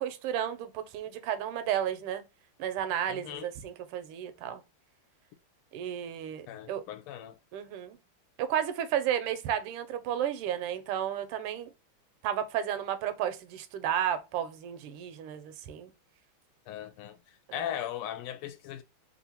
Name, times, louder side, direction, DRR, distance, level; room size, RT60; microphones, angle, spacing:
voice 1, 0.0-2.2 2.6-4.6 5.7-6.8 7.5-8.0 8.4-11.7 12.2-15.9 17.5-17.7, right 10 dB, 85° right, 1.5 m, -32 dB
voice 2, 3.1-3.5 6.5-7.4 16.7-17.2 17.5-18.8, left 11 dB, 80° left, 1.5 m, -38 dB
3.6 x 2.5 x 2.7 m
omnidirectional pair, 2.4 m